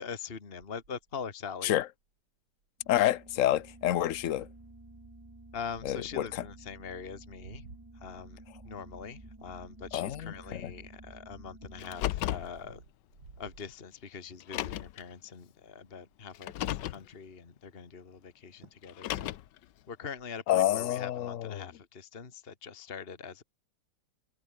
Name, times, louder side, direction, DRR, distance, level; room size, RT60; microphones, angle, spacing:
voice 1, 0.0-1.7 4.3-4.4 5.5-7.6 8.0-8.4 8.7-12.8 13.4-19.3 19.9-23.4, left 6 dB, 30° left, 1.9 m, -43 dB
sound 1, 0.6-2.1 2.6-2.7 2.9-3.2 3.7-4.0 4.9-6.3 7.0-10.9 11.4-14.4 14.9-15.2 15.4-15.5 15.8-16.5 18.2-18.3 18.6-19.0 19.3-20.3, right 4 dB, 85° right, 4.7 m, -57 dB
sound 2, 2.8-12.0, right 2 dB, 10° right, 1.7 m, -52 dB
voice 2, 2.9-4.5 5.8-6.4 9.9-10.7 20.5-21.7, left 12 dB, 55° left, 1.0 m, -28 dB
Car, 11.8-12.5 13.6-13.7 14.4-15.0 16.3-17.0 18.8-19.6, left 14 dB, 70° left, 1.3 m, -34 dB
omnidirectional pair, 2.0 m